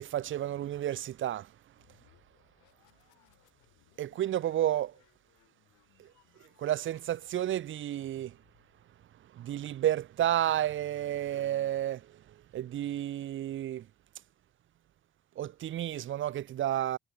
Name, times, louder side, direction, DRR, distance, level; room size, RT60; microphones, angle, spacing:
voice 1, 0.0-1.5 4.0-4.9 6.0-6.1 6.6-8.4 9.3-12.2 12.5-13.9 15.4-17.0, right 12 dB, 45° right, 0.4 m, -31 dB
sound 1, 1.5-9.2, left 21 dB, 85° left, 2.1 m, -67 dB
supercardioid pair, 50°, 30 cm